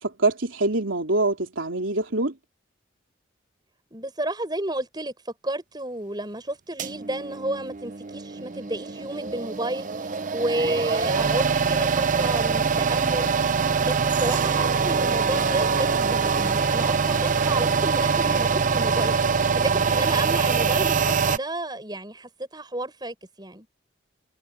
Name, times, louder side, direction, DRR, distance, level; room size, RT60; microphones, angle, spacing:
voice 1, 0.0-2.3, right 2 dB, 85° right, 3.2 m, -24 dB
voice 2, 3.9-5.1 5.4-9.9 10.3-13.3 13.8-19.2 19.5-23.7, right 1 dB, 20° right, 7.5 m, -31 dB
sound 1, 6.8-21.4, right 5 dB, 40° right, 0.7 m, -24 dB
head